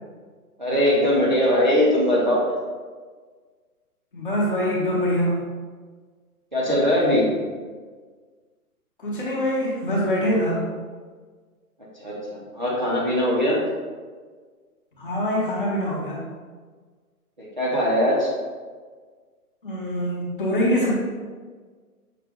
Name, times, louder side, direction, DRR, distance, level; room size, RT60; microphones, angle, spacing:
voice 1, 0.6-2.4 6.5-7.3 12.0-13.6 17.4-18.3, left 1 dB, 30° right, -7 dB, 0.5 m, -21 dB
voice 2, 4.1-5.4 9.0-10.6 15.0-16.2 19.6-20.9, equal, 35° left, -5 dB, 0.8 m, -24 dB
5.8 x 2.1 x 3.4 m, 1.5 s
hypercardioid pair, 170°, 46 cm